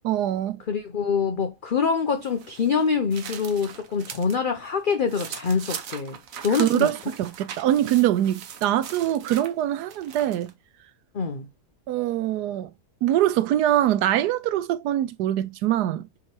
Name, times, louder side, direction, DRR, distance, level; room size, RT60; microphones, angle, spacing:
voice 1, 0.0-0.6 6.5-10.5 11.9-12.7 13.0-16.1, right 12 dB, 85° right, 1.2 m, -23 dB
voice 2, 0.7-6.2 6.4-6.9 11.1-11.5, left 5 dB, 50° left, 0.6 m, -25 dB
sound 1, 2.2-4.4 4.8-10.5, right 8 dB, 60° right, 1.1 m, -40 dB
7.5 x 3.2 x 4.4 m
omnidirectional pair, 1.7 m